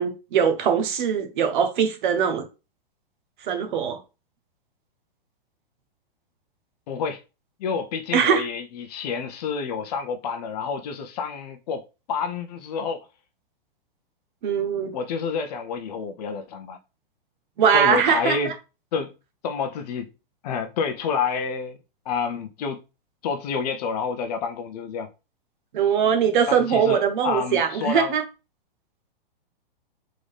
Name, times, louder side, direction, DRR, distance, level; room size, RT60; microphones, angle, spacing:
voice 1, 0.0-2.4 3.4-4.0 8.1-8.5 14.4-14.9 17.6-18.5 25.7-28.2, right 7 dB, 55° right, 1.1 m, -21 dB
voice 2, 6.9-7.2 7.6-13.0 14.9-16.8 17.7-18.5 18.9-19.1 19.4-20.1 20.4-21.8 22.1-22.8 23.2-25.1 26.5-28.2, left 5 dB, 45° left, 0.8 m, -28 dB
3.9 x 3.8 x 3.5 m
hypercardioid pair, 150°, 29 cm